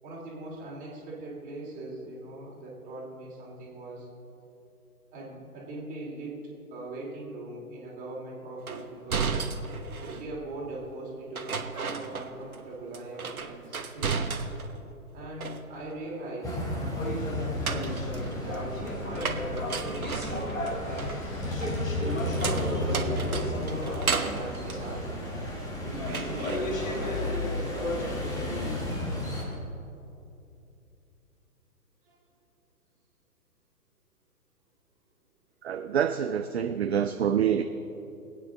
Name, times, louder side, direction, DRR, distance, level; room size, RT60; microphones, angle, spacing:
voice 1, 0.0-4.1 5.1-9.4 10.0-14.4 15.1-16.6 18.4-21.3 21.9-25.3 25.8-28.3 32.0-32.2, right 2 dB, 20° right, -4 dB, 2.9 m, -40 dB
sound 1, 8.7-10.3 11.4-12.7 12.9-14.8 15.1-16.0 17.4-25.7 26.1-26.7, right 5 dB, 70° right, 1.2 m, -34 dB
sound 2, 16.4-29.4, left 1 dB, 10° left, 1.5 m, -33 dB
sound 3, 17.0-29.6, left 1 dB, 60° left, 1.8 m, -36 dB
voice 2, 35.6-37.6, right 8 dB, 45° right, 7 dB, 0.6 m, -26 dB
24.0 x 9.0 x 3.7 m, 2.8 s
figure-of-eight pair, 125°, 45 cm